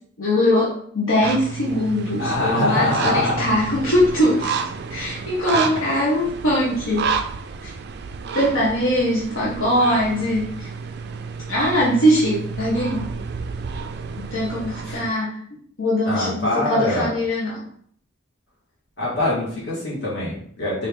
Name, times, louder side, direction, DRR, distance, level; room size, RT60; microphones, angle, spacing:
voice 1, 0.2-4.5 4.9-7.1 7.6-7.7 8.3-10.7 11.5-13.1 14.2-15.4 15.8-17.6, equal, 85° left, -6 dB, 1.0 m, -21 dB
ravens at beach, 1.2-15.1, right 5 dB, 50° right, 0.3 m, -30 dB
voice 2, 2.2-3.4 14.8-15.0 16.1-17.2 19.0-20.9, left 2 dB, 60° left, -7 dB, 1.8 m, -23 dB
4.1 x 2.7 x 3.6 m, 0.62 s
head